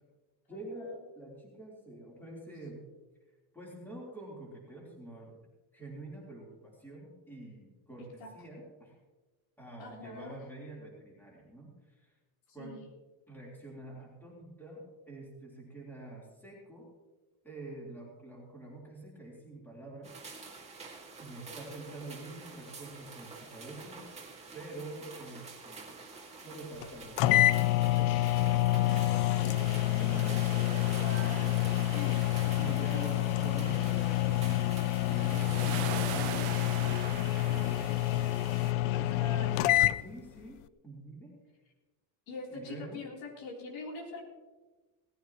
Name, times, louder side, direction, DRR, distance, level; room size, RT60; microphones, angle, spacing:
voice 1, 0.5-2.8 3.5-5.4 5.7-9.0 9.6-12.1 12.5-12.8 13.3-16.9 17.4-20.6 21.2-24.0 24.5-26.0 26.4-28.6 29.0-29.6 30.0-30.9 32.6-36.5 36.9-38.0 39.0-41.3 42.5-43.0, right 2 dB, 5° left, -5 dB, 3.6 m, -47 dB
voice 2, 9.8-10.4 12.6-12.9 30.1-32.6 32.9-33.1 38.9-39.5 42.3-44.2, left 3 dB, 65° left, -2 dB, 3.7 m, -43 dB
sound 1, 20.0-36.4, right 4 dB, 15° right, 2.1 m, -48 dB
sound 2, 26.8-26.9 27.2-40.0, left 15 dB, 85° left, 0.6 m, -28 dB
sound 3, 28.9-38.7, right 17 dB, 90° right, 0.7 m, -43 dB
18.0 x 15.0 x 3.0 m, 1.3 s
cardioid pair, 180°, 49 cm